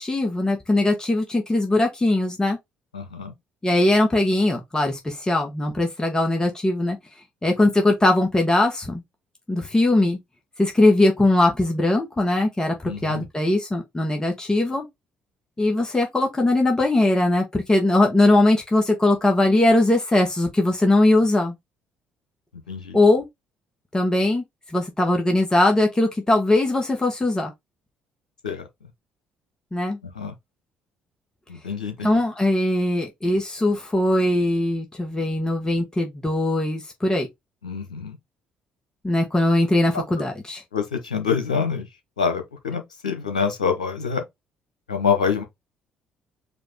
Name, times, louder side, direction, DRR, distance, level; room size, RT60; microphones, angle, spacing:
voice 1, 0.0-2.6 3.6-7.0 7.4-9.0 9.5-10.2 10.6-14.8 15.6-21.5 22.9-23.3 23.9-24.4 24.7-27.5 29.7-30.0 32.0-37.3 39.0-40.6, left 2 dB, 20° left, 1.4 m, -20 dB
voice 2, 2.9-3.3 12.9-13.2 22.7-23.0 28.4-28.6 30.1-30.3 31.5-32.2 37.6-38.2 40.7-41.9 42.2-44.2 44.9-45.4, left 6 dB, 90° left, 0.9 m, -26 dB
5.0 x 2.6 x 3.6 m
hypercardioid pair, 50°, 4 cm